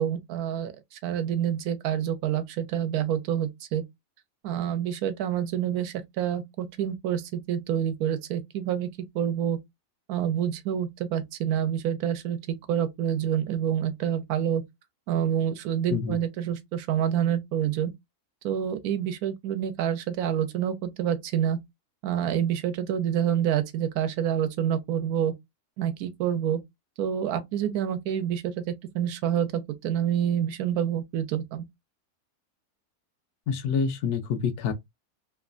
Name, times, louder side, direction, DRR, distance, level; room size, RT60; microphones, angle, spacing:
voice 1, 0.0-3.8 4.4-8.9 9.1-9.6 10.1-12.4 12.7-14.6 15.1-17.9 18.4-21.6 22.0-25.3 25.8-26.6 27.0-28.5 28.9-31.6, right 9 dB, 75° right, 1.1 m, -27 dB
voice 2, 33.5-34.7, left 6 dB, 90° left, 1.1 m, -27 dB
3.1 x 2.1 x 2.4 m
omnidirectional pair, 1.6 m